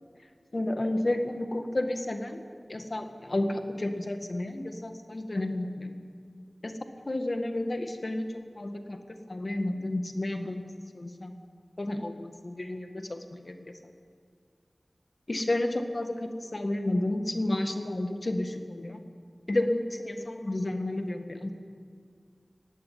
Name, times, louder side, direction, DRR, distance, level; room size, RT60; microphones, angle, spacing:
voice 1, 0.5-2.4 2.7-6.0 6.6-6.7 7.1-9.0 9.3-10.6 10.9-11.4 11.8-13.6 15.3-19.0 19.5-21.5, left 1 dB, 50° left, 7 dB, 1.9 m, -31 dB
20.5 x 16.0 x 9.5 m, 2.2 s
wide cardioid pair, 55°, 0 cm